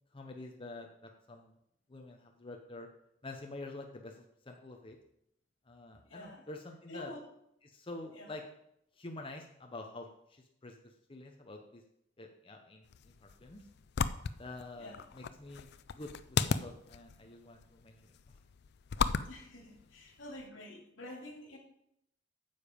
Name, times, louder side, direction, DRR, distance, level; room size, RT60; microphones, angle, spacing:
voice 1, 0.1-1.5 1.9-2.9 3.2-5.0 5.7-7.1 7.6-8.4 8.9-11.8 12.2-13.7 14.3-18.1, left 2 dB, 30° left, 3 dB, 0.8 m, -48 dB
voice 2, 6.0-6.4 6.9-7.2 8.1-8.3 14.8-15.0 19.3-21.6, left 1 dB, 80° left, 1 dB, 2.4 m, -48 dB
sound 1, 12.8-20.5, left 5 dB, 60° left, 0.4 m, -37 dB
9.5 x 7.0 x 5.1 m, 0.75 s
head